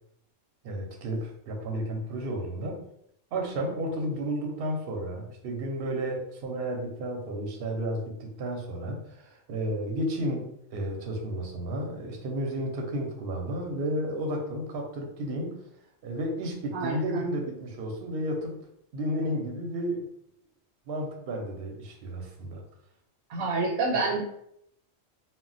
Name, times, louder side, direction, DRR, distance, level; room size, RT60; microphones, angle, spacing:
voice 1, 0.6-2.8 3.3-15.7 16.0-18.5 18.9-20.1 20.9-22.6 23.9-24.0, right 1 dB, 55° right, 1 dB, 0.7 m, -32 dB
voice 2, 16.7-17.2 23.3-24.2, right 3 dB, 85° right, -1 dB, 1.0 m, -28 dB
2.1 x 2.1 x 3.8 m, 0.75 s
omnidirectional pair, 1.3 m